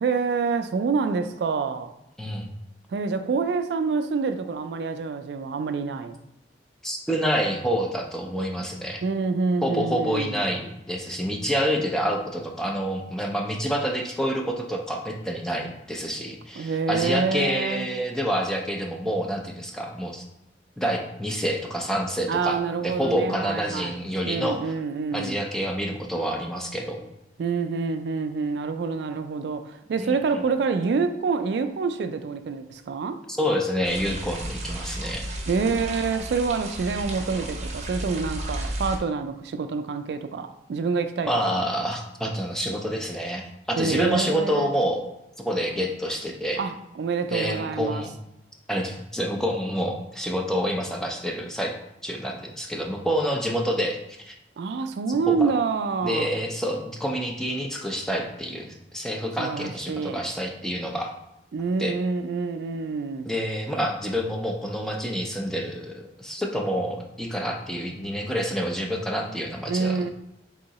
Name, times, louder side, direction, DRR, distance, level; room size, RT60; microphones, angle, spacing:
voice 1, 0.0-1.9 2.9-6.2 9.0-10.4 16.6-17.9 22.3-24.0 24.2-25.4 27.4-33.2 35.5-41.6 43.8-44.7 46.6-48.0 54.6-56.3 59.4-60.3 61.5-63.3 69.7-70.1, right 4 dB, 65° right, 0.3 m, -27 dB
voice 2, 2.2-2.5 6.8-9.0 9.6-20.2 20.8-24.7 25.1-27.0 30.0-30.2 33.3-35.2 41.3-46.6 47.3-48.1 48.7-51.7 52.0-54.0 54.3-54.4 55.1-55.5 56.0-61.1 61.8-61.9 63.2-70.1, equal, 5° left, 0.4 m, -28 dB
sound 1, 33.8-39.0, right 1 dB, 40° right, 0.7 m, -33 dB
3.6 x 2.8 x 4.0 m
head